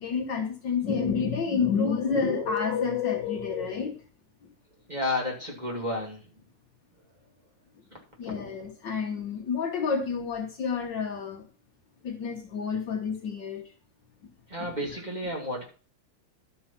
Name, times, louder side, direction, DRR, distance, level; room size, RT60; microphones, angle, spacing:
voice 1, 0.0-4.0 8.2-11.5 12.0-13.7 14.6-14.7, left 6 dB, 60° left, 3 dB, 1.8 m, -29 dB
voice 2, 4.9-6.2 14.5-15.6, left 1 dB, 20° right, -1 dB, 2.7 m, -31 dB
12.0 x 5.6 x 5.8 m, 0.38 s
omnidirectional pair, 2.3 m